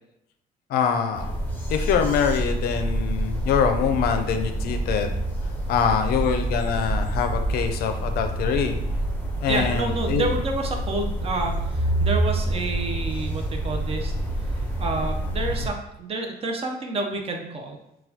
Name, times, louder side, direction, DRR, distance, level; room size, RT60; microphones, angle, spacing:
voice 1, 0.7-1.4 1.7-5.1 5.7-8.8 9.4-10.3, left 7 dB, 65° left, 6 dB, 0.4 m, -24 dB
sound 1, 1.1-15.7, right 1 dB, 10° left, 0.7 m, -27 dB
voice 2, 9.5-14.1 14.8-17.8, right 3 dB, 35° right, 3 dB, 0.5 m, -29 dB
4.0 x 2.2 x 2.8 m, 0.83 s
cardioid pair, 110°, 17 cm